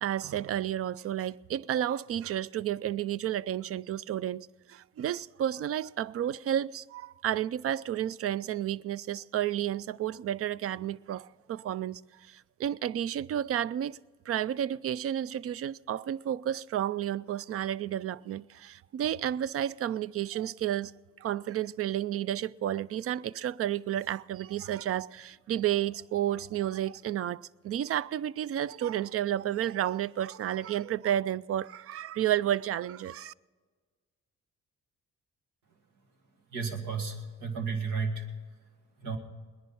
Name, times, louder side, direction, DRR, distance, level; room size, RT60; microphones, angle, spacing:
voice 1, 0.0-12.0 12.3-14.0 14.3-20.9 21.2-33.3, right 11 dB, 50° right, 0.4 m, -31 dB
voice 2, 36.5-38.2 39.0-39.2, right 5 dB, 85° right, 2.0 m, -32 dB
19.5 x 11.0 x 5.5 m
cardioid pair, 90°, 30 cm